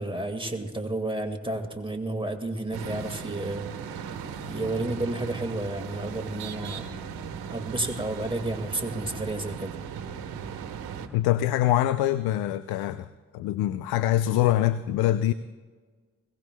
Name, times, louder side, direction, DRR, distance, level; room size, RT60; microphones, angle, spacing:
voice 1, 0.0-3.6 4.0-4.1 4.5-6.8 7.5-9.8, right 2 dB, 15° right, 2.0 m, -31 dB
sound 1, 2.7-11.1, right 7 dB, 75° right, 1.4 m, -37 dB
voice 2, 11.1-13.1 13.3-15.3, left 13 dB, 80° left, 0.5 m, -24 dB
21.5 x 18.0 x 2.3 m
hypercardioid pair, 50°, 37 cm